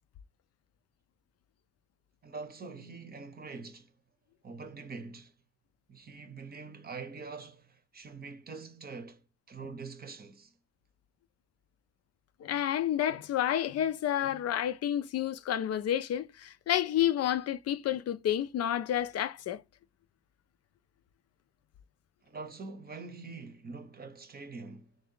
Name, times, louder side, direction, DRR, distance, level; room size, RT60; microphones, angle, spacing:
voice 1, 2.2-3.9 4.4-5.3 5.9-9.2 9.5-10.5 22.2-24.9, right 4 dB, 30° right, 0.8 m, -44 dB
voice 2, 12.4-19.6, left 11 dB, 55° left, 0.5 m, -30 dB
3.4 x 2.7 x 3.7 m
cardioid pair, 90°, 30 cm